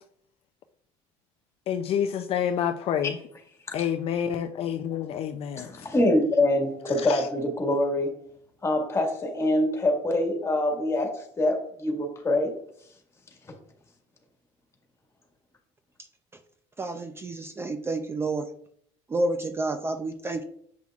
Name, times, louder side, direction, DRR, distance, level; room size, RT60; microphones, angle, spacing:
voice 1, 1.7-3.2 3.7-5.7 7.1-7.2, left 9 dB, 50° left, 7 dB, 0.4 m, -28 dB
voice 2, 5.6-8.2 8.6-12.5, left 1 dB, 20° left, 2 dB, 1.7 m, -25 dB
voice 3, 16.8-18.4 19.1-20.4, right 2 dB, 20° right, 7 dB, 0.4 m, -29 dB
7.3 x 5.7 x 2.4 m, 0.66 s
cardioid pair, 120°, 12 cm